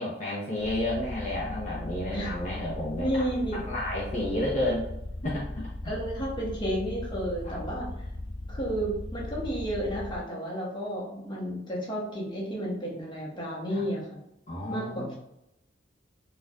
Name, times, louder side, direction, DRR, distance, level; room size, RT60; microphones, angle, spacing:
voice 1, 0.0-3.2 3.5-4.8 5.2-5.9 7.4-7.6 13.7-13.8 14.5-15.2, left 1 dB, 40° left, -6 dB, 0.7 m, -31 dB
sound 1, 0.6-10.2, left 1 dB, 85° left, 0.5 m, -38 dB
voice 2, 3.0-3.6 4.6-4.7 5.8-7.9 8.5-14.2 14.7-15.2, equal, 25° left, -5 dB, 1.0 m, -32 dB
4.4 x 2.4 x 2.4 m, 0.83 s
head